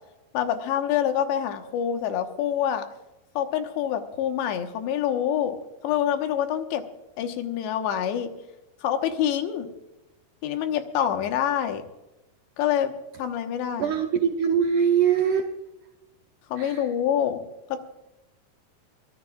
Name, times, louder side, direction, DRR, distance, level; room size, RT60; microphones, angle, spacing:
voice 1, 0.3-2.8 3.4-5.6 5.8-6.8 7.2-8.3 8.8-9.7 10.4-11.8 12.6-12.9 13.2-13.9 16.5-17.4 17.7-17.8, left 9 dB, 80° left, 6 dB, 3.3 m, -26 dB
voice 2, 13.8-15.5 16.6-16.8, right 7 dB, 85° right, 4 dB, 1.8 m, -22 dB
24.0 x 17.0 x 2.4 m, 0.95 s
omnidirectional pair, 5.0 m